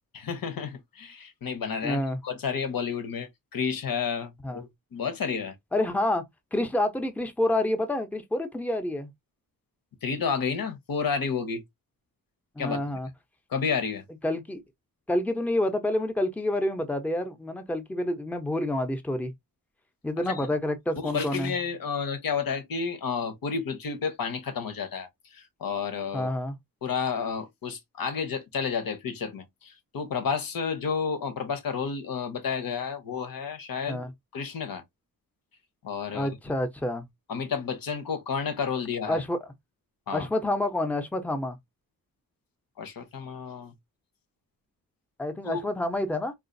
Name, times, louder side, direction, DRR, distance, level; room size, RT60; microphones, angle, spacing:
voice 1, 0.1-5.5 10.0-11.6 12.6-12.8 13.5-14.0 20.3-20.5 21.0-26.3 26.8-34.0 34.3-34.8 35.8-36.3 37.3-39.2 40.1-40.3 42.8-43.7 45.4-45.6, left 6 dB, 70° left, 0.9 m, -31 dB
voice 2, 1.8-2.2 4.4-4.7 5.7-6.2 6.5-9.1 12.6-13.1 14.2-14.6 15.1-19.3 20.0-21.5 26.1-26.6 33.9-34.1 36.1-37.1 39.1-39.4 40.1-41.6 45.2-46.3, left 1 dB, 5° left, 0.5 m, -28 dB
3.8 x 2.4 x 2.5 m
wide cardioid pair, 135°, 36 cm